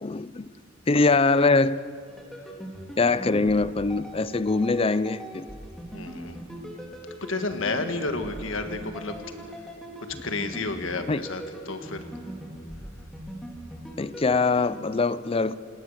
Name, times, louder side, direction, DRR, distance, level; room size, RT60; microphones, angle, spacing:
voice 1, 0.0-0.5 0.9-1.8 3.0-5.5 11.1-11.2 14.0-15.6, left 3 dB, 30° left, 0.5 m, -23 dB
sound 1, 2.1-14.8, right 1 dB, ahead, 3.3 m, -40 dB
voice 2, 5.9-6.4 7.2-9.2 10.2-12.0, left 3 dB, 75° left, 1.6 m, -31 dB
27.5 x 19.5 x 6.6 m
head